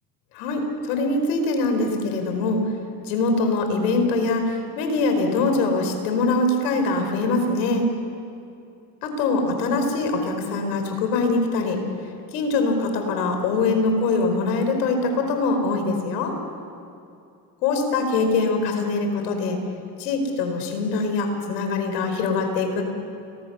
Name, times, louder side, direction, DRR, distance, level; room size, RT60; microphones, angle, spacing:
voice 1, 0.3-2.6 3.0-7.9 9.0-11.8 12.3-16.4 17.6-19.6 20.0-22.8, left 3 dB, 80° left, 5 dB, 5.0 m, -23 dB
30.0 x 22.0 x 6.9 m, 2.6 s
hypercardioid pair, 75°, 48 cm